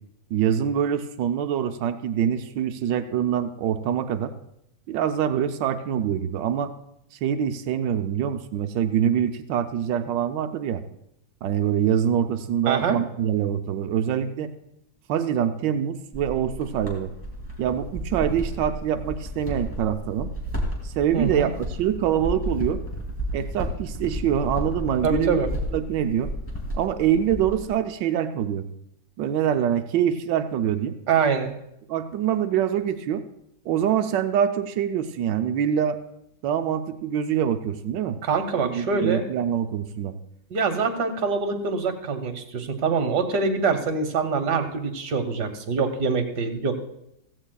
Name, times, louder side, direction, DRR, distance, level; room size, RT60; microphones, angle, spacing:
voice 1, 0.3-4.3 4.9-6.7 7.2-10.8 11.4-14.5 15.1-17.1 17.6-20.3 20.8-22.8 23.3-25.4 25.7-26.3 26.7-28.7 29.2-31.0 31.9-33.2 33.7-36.0 36.4-38.2 38.5-40.1, right 9 dB, 85° right, 8 dB, 1.3 m, -25 dB
voice 2, 12.7-13.0 21.1-21.5 25.0-25.5 31.1-31.5 38.2-39.3 40.5-46.8, right 5 dB, 70° right, 5 dB, 1.7 m, -24 dB
sound 1, 16.1-27.7, equal, 5° left, 2.4 m, -32 dB
15.5 x 15.5 x 2.3 m, 0.80 s
omnidirectional pair, 1.9 m